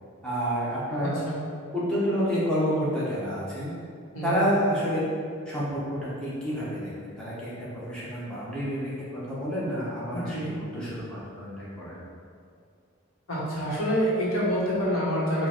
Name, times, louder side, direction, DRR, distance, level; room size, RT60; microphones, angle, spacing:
voice 1, 0.2-1.1 1.7-3.7 4.2-5.0 5.5-12.0, equal, 5° left, -9 dB, 1.0 m, -29 dB
voice 2, 1.0-1.4 4.1-4.4 10.1-10.5 13.3-15.5, equal, 85° left, -7 dB, 1.3 m, -27 dB
4.7 x 2.5 x 4.3 m, 2.2 s
head